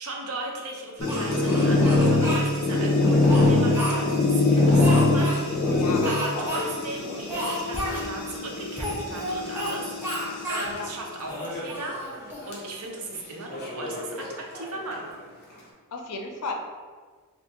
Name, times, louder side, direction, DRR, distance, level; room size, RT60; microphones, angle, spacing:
voice 1, 0.0-5.7 6.0-12.0 12.5-15.1, right 2 dB, 70° right, 0 dB, 0.6 m, -37 dB
sound 1, 1.0-10.5 11.2-11.8 12.1-12.2 12.5-12.6 13.5-14.6, left 2 dB, 45° left, 0.7 m, -23 dB
Speech, 1.1-2.5 3.0-4.3 4.8-5.4 6.0-6.6 6.9-7.0 7.3-8.1 8.8-9.7 10.0-10.7 11.2-12.6, equal, 10° right, 0.6 m, -31 dB
voice 2, 5.7-6.1 6.3-6.5 10.7-10.9 15.9-16.5, left 3 dB, 85° left, 2 dB, 0.5 m, -35 dB
2.7 x 2.5 x 3.5 m, 1.5 s
head